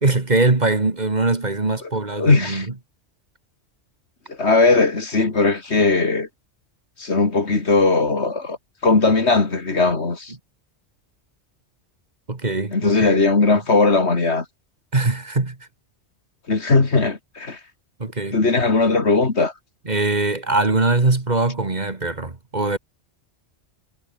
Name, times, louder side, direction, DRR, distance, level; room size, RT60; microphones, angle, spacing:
voice 1, 0.0-2.7 12.3-13.2 14.9-15.6 18.0-18.4 19.9-22.8, right 3 dB, 35° right, 2.1 m, -22 dB
voice 2, 2.2-2.7 4.3-6.3 7.0-8.6 8.8-10.3 12.7-14.4 16.5-17.6 18.3-19.5, left 3 dB, 65° left, 2.8 m, -18 dB
omnidirectional pair, 1.2 m